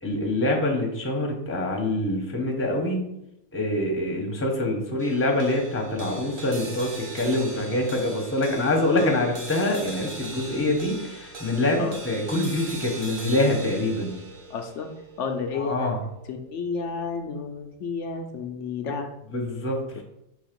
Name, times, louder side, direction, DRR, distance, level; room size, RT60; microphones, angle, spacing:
voice 1, 0.0-3.1 3.5-14.1 15.5-16.0 19.3-20.0, left 1 dB, 10° left, 1 dB, 0.8 m, -25 dB
sound 1, 5.0-17.5, right 2 dB, 30° right, 0.8 m, -40 dB
voice 2, 10.5-10.8 11.8-12.0 14.5-14.9 15.2-15.9 16.3-19.1, left 5 dB, 65° left, 5 dB, 0.8 m, -31 dB
6.2 x 3.3 x 5.1 m, 0.82 s
omnidirectional pair, 1.5 m